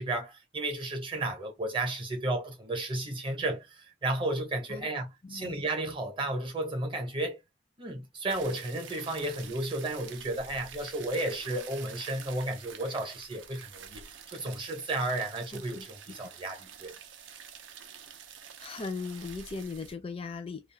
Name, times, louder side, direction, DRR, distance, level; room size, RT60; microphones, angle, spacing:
voice 1, 0.0-7.4 7.8-16.9, right 2 dB, 30° right, 0.8 m, -33 dB
voice 2, 5.2-5.5 15.5-15.8 18.6-20.6, left 4 dB, 30° left, 0.4 m, -38 dB
sound 1, 8.3-19.9, right 7 dB, 85° right, 0.5 m, -48 dB
2.3 x 2.1 x 3.2 m
head